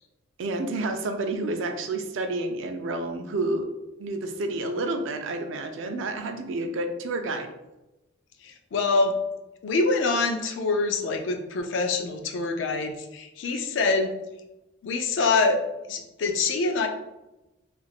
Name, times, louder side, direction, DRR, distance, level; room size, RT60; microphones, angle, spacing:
voice 1, 0.4-3.7 4.0-7.5, right 2 dB, 70° right, 6 dB, 0.4 m, -29 dB
voice 2, 8.4-9.2 9.6-14.1 14.8-15.6 15.9-16.9, left 3 dB, 65° left, 5 dB, 0.4 m, -25 dB
3.3 x 2.4 x 2.4 m, 1.0 s
head